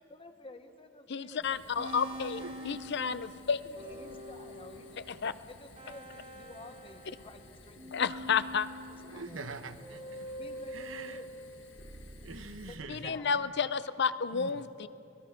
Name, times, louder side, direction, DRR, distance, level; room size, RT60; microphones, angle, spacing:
voice 1, 0.1-1.5 1.8-2.5 3.6-5.1 5.5-8.0 9.1-9.5 10.4-11.3 12.6-13.3, left 2 dB, 30° left, 8 dB, 1.2 m, -51 dB
voice 2, 1.1-3.6 5.1-5.3 7.9-8.7 12.9-14.9, left 6 dB, 60° left, 14 dB, 0.6 m, -31 dB
Fire, 1.4-12.7, left 2 dB, 80° left, 1.8 m, -56 dB
sound 1, 1.8-7.5 7.8-12.9, equal, 35° right, 2.1 m, -46 dB
voice 3, 2.4-2.8 9.1-11.2 12.2-13.5 14.3-14.6, right 3 dB, 80° right, 9 dB, 1.1 m, -45 dB
24.0 x 20.5 x 6.0 m, 2.8 s
head